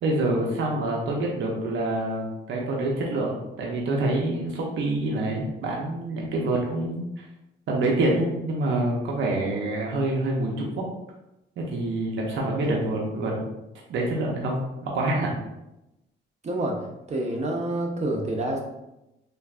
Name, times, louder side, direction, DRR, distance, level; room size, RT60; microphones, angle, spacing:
voice 1, 0.0-7.3 7.7-10.8 11.6-13.3 13.9-15.3, right 2 dB, 70° right, -2 dB, 0.7 m, -26 dB
voice 2, 16.4-18.6, right 1 dB, 35° right, 0 dB, 0.6 m, -28 dB
3.3 x 2.5 x 2.4 m, 0.92 s
cardioid pair, 90°, 20 cm